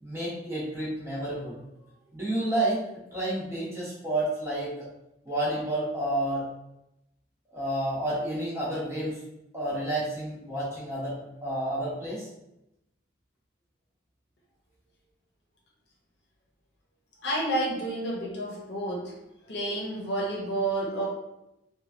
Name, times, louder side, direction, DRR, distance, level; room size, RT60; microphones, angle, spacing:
voice 1, 0.0-1.6 2.1-2.8 3.1-4.9 5.3-6.5 7.5-9.2 9.5-11.1 11.4-12.3, right 1 dB, 15° right, -7 dB, 0.8 m, -30 dB
voice 2, 17.2-19.1 19.5-21.1, right 1 dB, 60° left, -3 dB, 0.7 m, -30 dB
3.1 x 2.3 x 2.7 m, 0.88 s
head